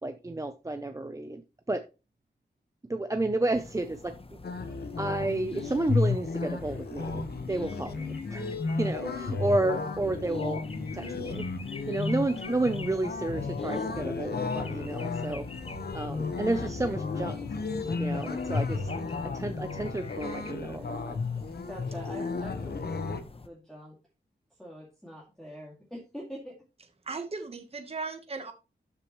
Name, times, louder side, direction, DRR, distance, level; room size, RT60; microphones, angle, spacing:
voice 1, 0.0-1.4 1.7-1.9 2.9-4.2 5.0-10.6 10.9-11.4 11.9-15.5 15.9-17.5 18.0-18.9 19.3-21.2, right 2 dB, 15° right, 0.5 m, -31 dB
sound 1, 3.5-23.5, left 3 dB, 30° left, 0.9 m, -45 dB
sound 2, 4.4-23.2, left 4 dB, 60° left, 1.2 m, -33 dB
voice 2, 21.3-23.0 23.4-24.0 24.6-26.6, equal, 5° left, 2.3 m, -44 dB
voice 3, 27.0-28.5, right 4 dB, 35° right, 1.2 m, -37 dB
12.5 x 6.8 x 3.1 m
wide cardioid pair, 145°, 19 cm